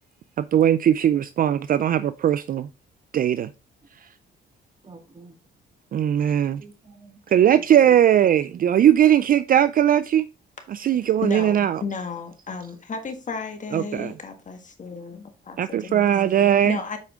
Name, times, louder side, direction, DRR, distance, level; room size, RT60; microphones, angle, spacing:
voice 1, 0.4-2.7 3.1-3.5 5.9-6.6 7.3-10.3 10.7-11.8 13.7-14.1 15.6-16.8, right 10 dB, 45° right, 0.4 m, -19 dB
voice 2, 4.8-5.4 6.3-7.9 8.6-8.7, right 2 dB, 25° right, 3.0 m, -46 dB
voice 3, 11.2-15.6 15.8-17.0, left 4 dB, 40° left, 1.6 m, -34 dB
8.2 x 4.8 x 3.6 m
cardioid pair, 90°, 20 cm